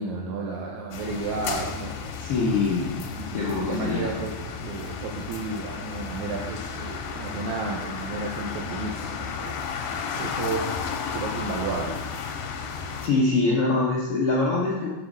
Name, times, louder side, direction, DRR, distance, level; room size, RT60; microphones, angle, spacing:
voice 1, 0.0-2.0 2.8-2.9 3.2-9.6 10.2-10.8 11.1-12.0, right 3 dB, 75° right, -2 dB, 2.0 m, -32 dB
sound 1, 0.9-13.1, left 6 dB, 90° left, 2.4 m, -33 dB
voice 2, 2.2-3.0 3.3-4.1 13.0-14.9, left 3 dB, 70° left, -4 dB, 1.4 m, -24 dB
6.1 x 5.3 x 6.0 m, 1.1 s
omnidirectional pair, 3.8 m